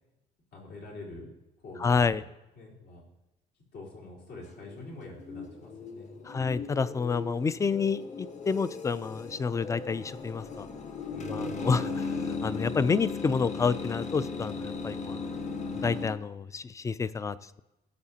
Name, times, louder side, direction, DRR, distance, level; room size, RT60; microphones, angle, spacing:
voice 1, 0.5-1.3 1.6-2.3 2.5-3.0 3.7-6.6 11.1-11.9, left 2 dB, 80° left, -5 dB, 3.9 m, -45 dB
voice 2, 1.8-2.2 6.3-10.7 11.3-15.2 15.8-17.6, left 5 dB, 20° left, 17 dB, 0.4 m, -29 dB
sound 1, 4.4-16.1, left 4 dB, 45° left, 1.2 m, -37 dB
19.0 x 7.2 x 2.8 m, 0.99 s
cardioid pair, 110°, 17 cm